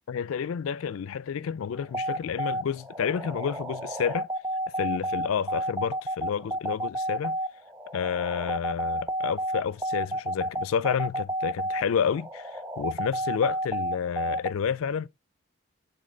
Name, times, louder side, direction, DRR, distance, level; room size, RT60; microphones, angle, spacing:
voice 1, 0.1-4.3 4.8-7.4 7.9-15.1, left 7 dB, 70° left, 0.4 m, -30 dB
sound 1, 1.7-14.5, right 1 dB, 10° right, 0.5 m, -31 dB
8.5 x 3.9 x 3.9 m
head